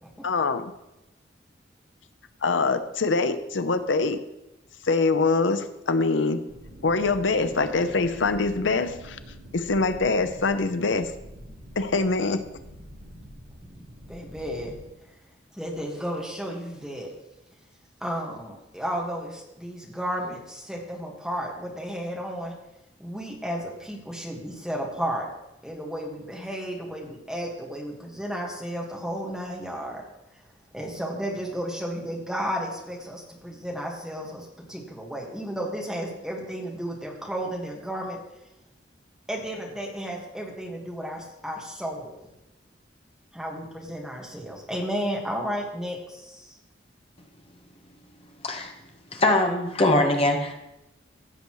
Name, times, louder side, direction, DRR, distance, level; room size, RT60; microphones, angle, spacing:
voice 1, 0.2-0.7 2.4-4.2 4.8-6.4 6.8-9.2 9.5-11.1 11.8-12.4, left 3 dB, 90° left, 10 dB, 0.7 m, -24 dB
sound 1, 6.5-14.9, equal, 50° right, 2.1 m, -46 dB
voice 2, 13.7-14.7 15.5-17.1 18.0-22.5 23.0-25.3 25.6-30.0 30.7-38.2 39.3-42.2 43.3-46.5, equal, 5° right, -1 dB, 1.7 m, -33 dB
voice 3, 49.1-50.5, left 1 dB, 30° left, 3 dB, 1.2 m, -22 dB
16.0 x 6.9 x 3.1 m, 0.92 s
head